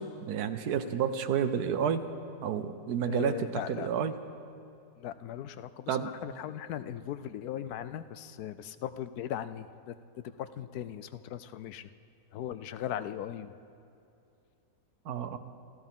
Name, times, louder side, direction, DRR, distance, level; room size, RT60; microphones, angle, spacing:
voice 1, 0.0-2.0 2.4-3.4 3.7-4.1 5.9-6.1 15.1-15.4, right 8 dB, 70° right, 10 dB, 1.2 m, -30 dB
voice 2, 3.1-3.9 5.0-9.9 10.4-11.9 12.3-13.6, left 10 dB, 75° left, 13 dB, 1.0 m, -38 dB
27.5 x 14.0 x 3.6 m, 2.6 s
omnidirectional pair, 1.7 m